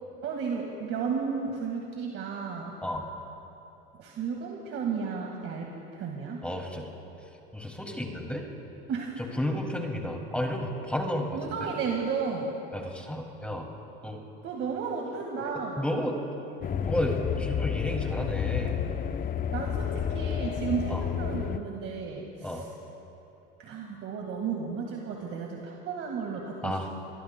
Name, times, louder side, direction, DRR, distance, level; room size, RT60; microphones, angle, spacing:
voice 1, 0.2-2.7 4.0-6.4 8.9-9.3 11.3-12.5 14.4-15.9 19.5-22.7 23.6-26.9, right 5 dB, 45° right, 0 dB, 1.8 m, -33 dB
voice 2, 6.4-6.9 7.5-8.4 9.4-11.7 12.7-13.7 14.0-14.2 15.8-16.2 16.8-18.8 20.9-21.0 22.4-22.6 26.6-26.9, left 1 dB, 5° left, 1 dB, 2.3 m, -32 dB
sound 1, 16.6-21.6, left 8 dB, 30° left, 0.6 m, -30 dB
24.0 x 22.5 x 2.2 m, 2.9 s
supercardioid pair, 95°, 29 cm